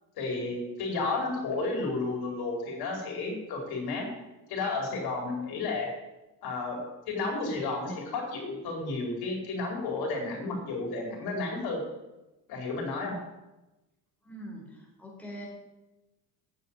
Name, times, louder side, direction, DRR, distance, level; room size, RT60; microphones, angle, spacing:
voice 1, 0.2-4.1 4.5-5.9 6.4-6.8 7.1-11.8 12.5-13.1, left 3 dB, 65° left, 0 dB, 4.7 m, -32 dB
voice 2, 14.2-15.5, equal, 5° left, -3 dB, 4.7 m, -43 dB
9.7 x 7.5 x 7.4 m, 1.0 s
supercardioid pair, 90°, 41 cm